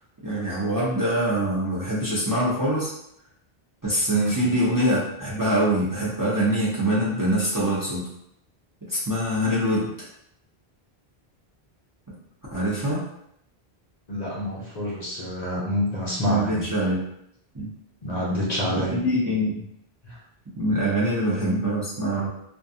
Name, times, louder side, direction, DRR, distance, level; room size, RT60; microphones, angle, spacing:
voice 1, 0.2-2.9 3.8-8.1 8.8-9.9 12.1-12.2 12.5-13.0 16.2-17.0 17.5-17.7 18.7-19.7 20.6-22.3, right 1 dB, 25° right, -8 dB, 0.6 m, -24 dB
voice 2, 4.1-4.5 14.1-16.7 18.0-19.0 20.0-20.2, left 1 dB, 45° left, -6 dB, 0.7 m, -27 dB
2.4 x 2.3 x 2.6 m, 0.75 s
omnidirectional pair, 1.1 m